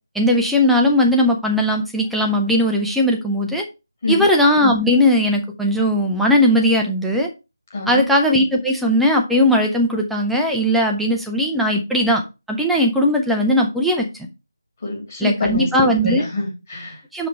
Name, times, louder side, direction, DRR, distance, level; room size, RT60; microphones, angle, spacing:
voice 1, 0.1-3.7 4.1-7.3 7.9-12.2 12.5-14.1 15.2-16.2 17.1-17.3, left 1 dB, ahead, 0 dB, 0.5 m, -18 dB
voice 2, 7.7-8.1 14.8-17.0, left 3 dB, 35° left, -1 dB, 2.6 m, -25 dB
5.7 x 4.6 x 4.9 m, 0.27 s
figure-of-eight pair, 160°, 2 cm